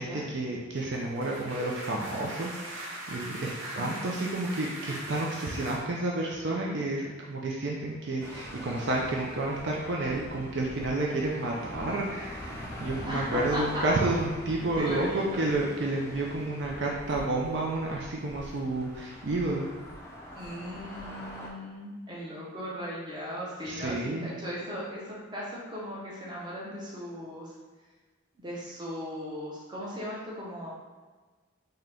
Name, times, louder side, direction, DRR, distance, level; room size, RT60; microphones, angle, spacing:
voice 1, 0.0-19.7 23.7-24.3, right 2 dB, 60° right, -2 dB, 0.5 m, -30 dB
sound 1, 0.8-5.8, right 1 dB, 75° right, 0.8 m, -41 dB
sound 2, 8.2-21.5, equal, 15° left, 0.4 m, -43 dB
voice 2, 13.1-13.8 14.8-15.2 20.3-27.5 28.4-30.7, equal, 20° right, -6 dB, 0.8 m, -37 dB
3.8 x 2.8 x 3.3 m, 1.3 s
head